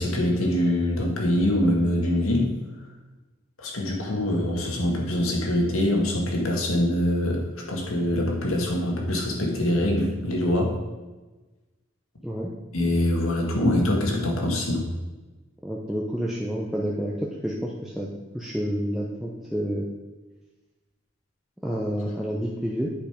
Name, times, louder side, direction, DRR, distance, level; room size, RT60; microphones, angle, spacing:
voice 1, 0.0-2.6 3.6-10.8 12.7-14.9, left 1 dB, 90° left, 0 dB, 2.0 m, -24 dB
voice 2, 15.6-18.1 18.3-19.9 21.6-22.9, equal, ahead, -4 dB, 0.7 m, -29 dB
9.0 x 5.4 x 5.2 m, 1.2 s
head